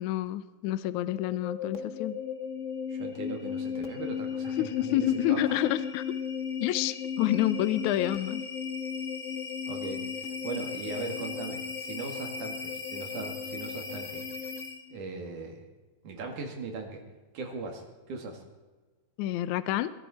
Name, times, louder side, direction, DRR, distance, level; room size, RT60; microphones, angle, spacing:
voice 1, 0.0-2.2 4.6-6.1 6.6-8.4 19.2-19.9, left 13 dB, 75° left, 14 dB, 2.0 m, -28 dB
sound 1, 1.1-15.0, left 6 dB, 55° left, 0.8 m, -36 dB
voice 2, 2.9-5.6 9.7-14.2 14.9-15.6 16.0-17.0 17.3-18.4, right 3 dB, 70° right, 3 dB, 3.6 m, -39 dB
22.5 x 15.0 x 4.3 m, 1.3 s
omnidirectional pair, 3.8 m